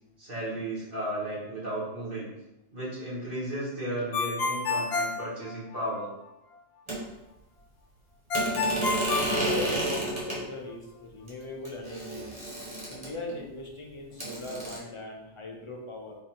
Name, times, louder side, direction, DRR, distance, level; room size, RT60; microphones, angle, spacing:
voice 1, 0.2-2.3 2.7-6.1, right 1 dB, 50° right, -8 dB, 1.9 m, -34 dB
Ringtone, 4.1-6.1 8.3-10.2, left 3 dB, 65° left, 0.7 m, -30 dB
sound 1, 6.9-7.0 8.3-10.4 11.3-11.4 11.6-13.3 14.2-14.8, right 1 dB, 25° right, 1.4 m, -30 dB
voice 2, 9.3-12.2 12.9-16.2, left 2 dB, 30° left, -2 dB, 0.6 m, -40 dB
3.9 x 2.7 x 4.4 m, 0.96 s
omnidirectional pair, 1.2 m